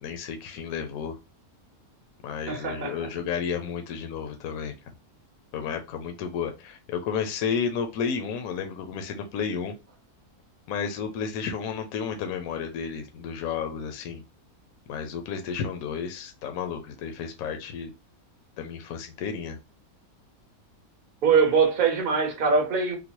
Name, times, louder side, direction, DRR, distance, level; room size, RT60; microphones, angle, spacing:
voice 1, 0.0-1.2 2.2-4.8 5.5-9.8 10.7-14.2 14.9-17.9 18.6-19.6, left 6 dB, 75° left, 1.0 m, -32 dB
voice 2, 2.5-3.1 21.2-23.0, right 5 dB, 45° right, 0.8 m, -22 dB
3.7 x 2.0 x 2.9 m
omnidirectional pair, 1.6 m